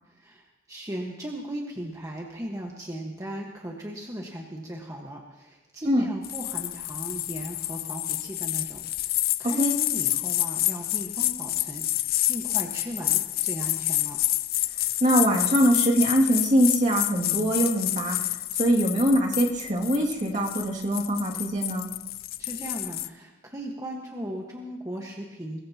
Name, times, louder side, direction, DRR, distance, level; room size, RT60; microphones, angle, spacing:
voice 1, 0.1-14.2 22.4-25.6, right 1 dB, 15° right, -1 dB, 1.5 m, -37 dB
sound 1, 6.2-23.1, left 15 dB, 50° left, 0.4 m, -28 dB
voice 2, 15.0-21.9, equal, 40° right, -2 dB, 2.4 m, -23 dB
23.0 x 20.5 x 3.0 m, 1.1 s
head